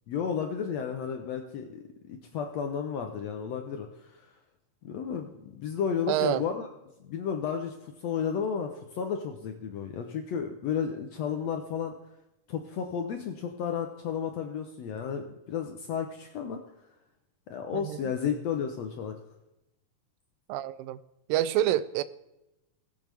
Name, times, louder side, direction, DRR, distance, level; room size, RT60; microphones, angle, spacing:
voice 1, 0.1-4.2 4.8-6.6 7.0-11.9 12.5-16.6 17.5-19.2, left 7 dB, 75° left, 5 dB, 1.6 m, -33 dB
voice 2, 6.1-6.4 17.7-18.1 20.5-21.0 21.3-22.0, right 12 dB, 90° right, 16 dB, 2.3 m, -27 dB
19.5 x 7.8 x 3.4 m, 0.92 s
omnidirectional pair, 3.9 m